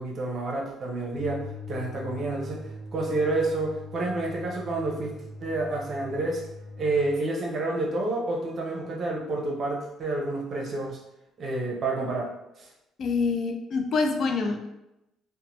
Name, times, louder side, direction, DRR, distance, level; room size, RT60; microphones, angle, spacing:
voice 1, 0.0-5.1 5.4-6.5 6.8-11.0 11.4-12.3 12.6-12.7, right 2 dB, 50° right, 0 dB, 0.7 m, -29 dB
sound 1, 1.1-7.1, left 3 dB, 30° right, 1.1 m, -41 dB
voice 2, 13.0-14.7, left 4 dB, 55° left, 5 dB, 0.4 m, -26 dB
2.7 x 2.1 x 3.0 m, 0.88 s
cardioid pair, 85°, 0 cm